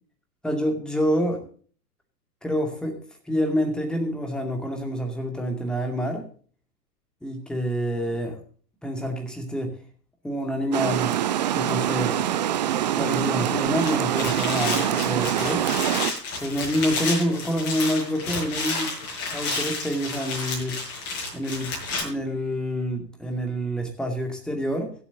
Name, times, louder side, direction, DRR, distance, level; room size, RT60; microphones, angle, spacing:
voice 1, 0.4-1.5 2.4-3.0 3.3-6.3 7.2-8.4 8.8-9.7 10.2-11.2 11.5-12.2 13.0-15.7 16.4-18.9 19.3-20.8 21.3-21.7 22.0-24.9, equal, ahead, 2 dB, 2.3 m, -27 dB
Water, 10.7-16.1, right 11 dB, 30° right, 0.5 m, -25 dB
sound 1, 13.8-22.0, left 3 dB, 30° left, 6.4 m, -31 dB
24.0 x 8.1 x 2.8 m, 0.43 s
figure-of-eight pair, 110°, 48 cm